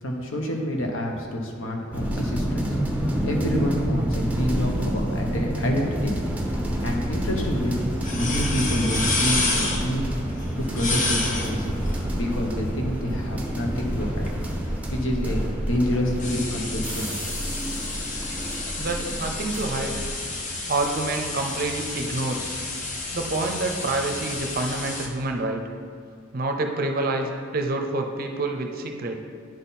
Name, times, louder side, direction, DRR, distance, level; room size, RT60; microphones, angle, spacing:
voice 1, 0.0-2.7 3.2-6.2 6.8-7.8 8.1-10.0 10.6-11.7 12.1-14.3 14.9-17.1, equal, 70° left, 1 dB, 1.0 m, -28 dB
sound 1, 1.9-20.1, right 1 dB, 5° right, 0.8 m, -28 dB
sound 2, 7.0-25.1, left 2 dB, 40° left, 0.8 m, -31 dB
voice 2, 18.8-20.0 20.7-22.6 23.1-25.6 26.3-29.2, right 2 dB, 45° right, 4 dB, 0.6 m, -27 dB
10.0 x 4.0 x 4.1 m, 2.2 s
head